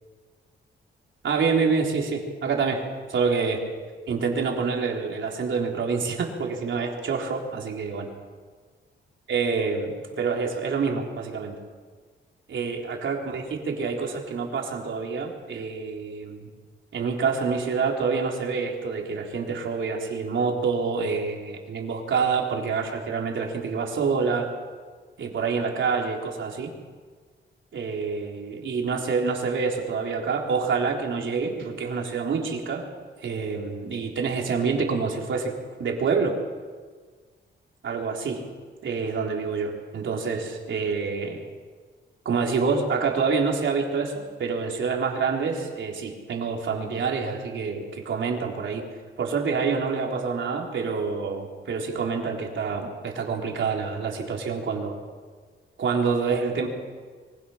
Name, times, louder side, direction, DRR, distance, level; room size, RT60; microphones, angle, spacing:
voice 1, 1.2-2.8 3.1-3.6 4.1-8.1 9.3-11.6 12.5-16.5 16.9-24.5 25.2-26.7 27.7-32.8 33.2-35.5 35.8-36.4 37.8-38.4 38.8-41.4 42.3-48.9 49.2-55.0 55.8-56.7, right 5 dB, 70° right, 0 dB, 3.9 m, -27 dB
25.0 x 24.5 x 5.8 m, 1.5 s
cardioid pair, 115°, 20 cm